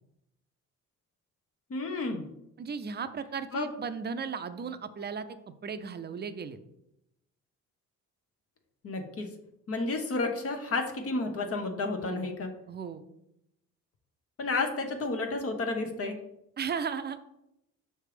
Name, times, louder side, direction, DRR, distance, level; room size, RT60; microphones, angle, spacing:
voice 1, 1.7-2.3 3.5-3.7 8.8-9.3 9.7-12.5 14.4-16.2, left 3 dB, 50° left, 4 dB, 1.0 m, -31 dB
voice 2, 2.6-5.4 5.6-6.6 12.0-12.3 12.7-13.0 16.6-17.2, right 6 dB, 35° right, 10 dB, 0.6 m, -36 dB
5.9 x 3.4 x 4.9 m, 0.82 s
cardioid pair, 90°, 30 cm